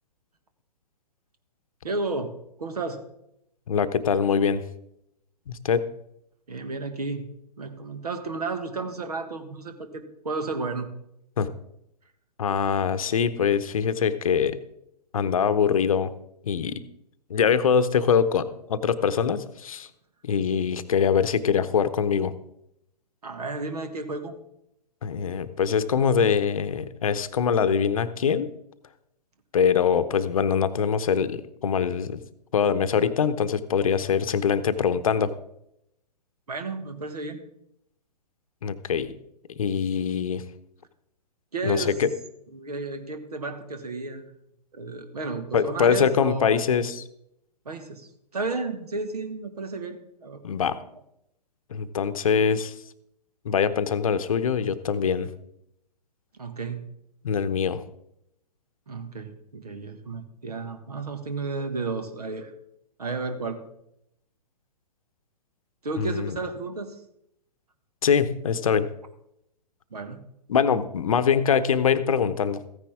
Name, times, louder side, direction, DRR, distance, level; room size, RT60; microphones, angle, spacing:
voice 1, 1.8-2.3 2.6-3.0 6.5-10.9 23.2-24.3 36.5-37.4 41.5-42.1 42.5-44.4 44.7-46.6 47.6-50.4 56.4-56.8 58.9-62.5 63.0-63.6 65.8-67.0 69.9-70.2, right 3 dB, 65° right, 8 dB, 1.7 m, -32 dB
voice 2, 3.7-4.7 5.5-5.8 11.4-11.5 12.4-14.6 15.1-16.1 16.4-16.8 17.3-19.9 20.2-22.3 25.0-28.5 29.5-32.2 32.5-35.3 38.6-39.1 39.6-40.4 41.6-42.1 45.5-47.0 50.4-50.8 51.7-52.7 53.4-55.3 57.2-57.8 66.0-66.4 68.0-68.9 70.5-72.6, left 7 dB, 55° left, 12 dB, 0.8 m, -23 dB
14.5 x 9.9 x 3.6 m, 0.79 s
figure-of-eight pair, 120°, 21 cm